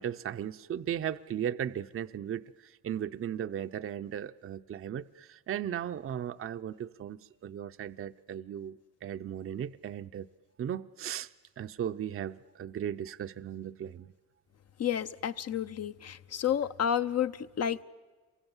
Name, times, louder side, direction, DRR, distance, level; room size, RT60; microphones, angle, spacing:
voice 1, 0.0-10.3 10.6-11.3 11.6-14.1, right 9 dB, 45° right, 10 dB, 0.7 m, -36 dB
voice 2, 14.8-17.8, left 9 dB, 55° left, 11 dB, 1.0 m, -31 dB
27.5 x 24.5 x 7.3 m, 1.4 s
cardioid pair, 90°, 30 cm